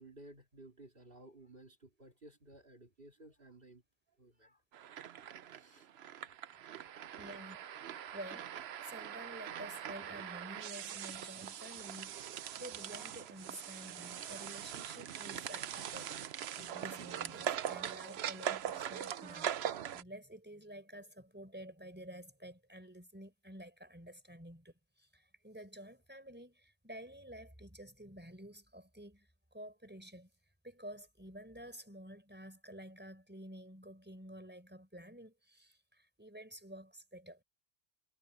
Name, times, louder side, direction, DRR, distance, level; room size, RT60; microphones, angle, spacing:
voice 1, 0.0-3.8 4.2-4.6 5.5-5.9 6.8-7.0, right 1 dB, 55° right, 2.9 m, -57 dB
sound 1, 4.7-20.0, right 10 dB, 70° right, 0.9 m, -42 dB
voice 2, 7.2-7.6 8.1-8.5 8.8-30.3 30.6-37.4, equal, 10° right, 4.7 m, -51 dB
omnidirectional pair, 1.1 m